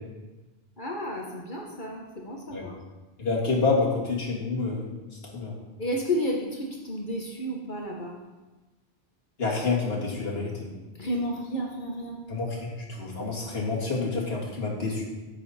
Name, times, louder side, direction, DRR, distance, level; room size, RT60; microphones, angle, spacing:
voice 1, 0.8-2.7 5.8-8.1 11.0-12.2, equal, 50° left, -1 dB, 1.3 m, -31 dB
voice 2, 3.2-4.9 5.3-5.6 9.4-10.7 12.3-15.0, left 3 dB, 70° left, -3 dB, 2.3 m, -28 dB
9.7 x 7.8 x 4.2 m, 1.1 s
omnidirectional pair, 1.1 m